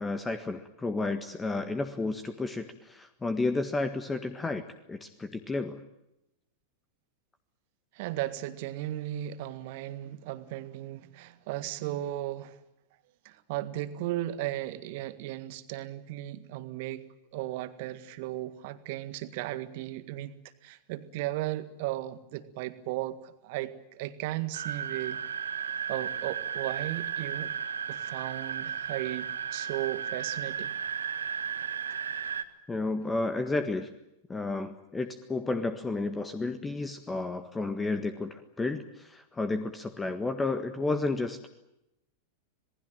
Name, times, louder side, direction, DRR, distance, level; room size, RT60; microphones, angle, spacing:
voice 1, 0.0-4.6 4.9-5.8 32.7-33.9 34.3-41.5, left 3 dB, 10° left, 9 dB, 1.6 m, -32 dB
voice 2, 7.9-12.6 13.3-17.1 17.3-20.3 20.6-25.2 25.9-27.5 27.9-30.8, right 15 dB, 50° right, 12 dB, 1.8 m, -36 dB
sound 1, 24.5-32.4, right 7 dB, 70° right, 1.4 m, -34 dB
27.0 x 19.5 x 9.0 m, 0.87 s
figure-of-eight pair, 90°, 0 cm